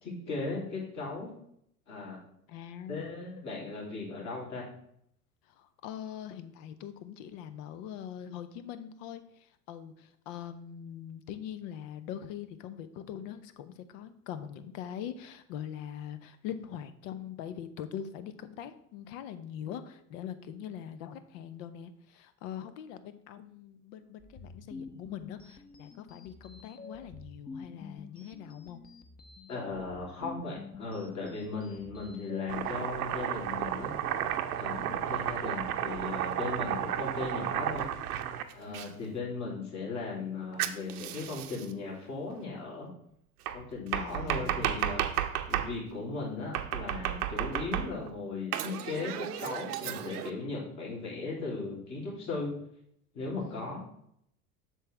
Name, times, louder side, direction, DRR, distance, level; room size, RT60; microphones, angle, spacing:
voice 1, 0.0-1.3 1.9-2.2 2.9-4.7 29.5-33.9 34.6-37.9 38.5-42.9 43.5-45.0 45.5-52.5 53.1-53.9, left 3 dB, 40° left, -3 dB, 3.1 m, -37 dB
voice 2, 2.5-3.2 5.6-28.8 34.8-35.1 38.7-39.0 43.9-45.1 53.4-53.7, left 9 dB, 60° left, 12 dB, 0.9 m, -43 dB
sound 1, 24.2-32.5, left 4 dB, 20° left, 0.9 m, -48 dB
Domestic sounds home sounds, 32.5-38.9 40.6-41.7 43.5-45.7 46.5-48.1 48.5-50.3, right 10 dB, 80° right, 0.7 m, -33 dB
7.7 x 6.4 x 3.4 m, 0.71 s
hypercardioid pair, 85°, 44 cm